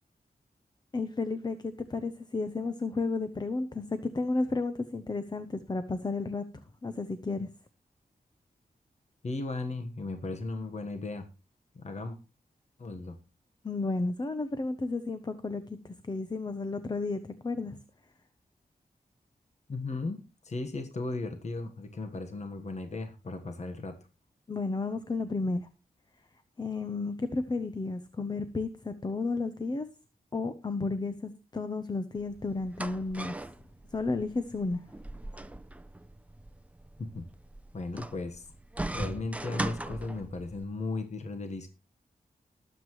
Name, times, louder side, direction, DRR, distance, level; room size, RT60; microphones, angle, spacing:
voice 1, 0.9-6.5 6.8-7.5 13.6-17.8 24.5-25.7 26.6-29.9 30.3-33.3 33.9-34.8 37.9-38.0, left 3 dB, 25° left, 11 dB, 0.8 m, -32 dB
voice 2, 9.2-11.3 11.7-12.2 12.8-13.1 19.7-23.9 37.0-37.2 37.7-38.5 38.9-41.7, left 3 dB, 50° left, 6 dB, 1.4 m, -36 dB
sound 1, 32.2-40.6, right 1 dB, 10° right, 0.6 m, -40 dB
20.0 x 8.1 x 3.2 m, 0.30 s
wide cardioid pair, 135°, 15 cm